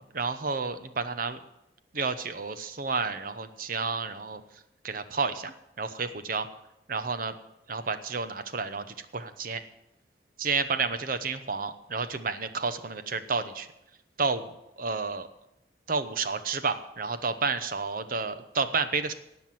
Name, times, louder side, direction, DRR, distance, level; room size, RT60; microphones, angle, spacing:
voice 1, 0.1-1.4 1.9-4.4 4.8-6.5 6.9-7.3 7.7-8.8 9.1-9.6 10.4-13.7 14.2-14.5 14.8-15.3 15.9-19.1, right 4 dB, 50° right, 10 dB, 0.9 m, -30 dB
17.5 x 6.0 x 7.6 m, 0.86 s
head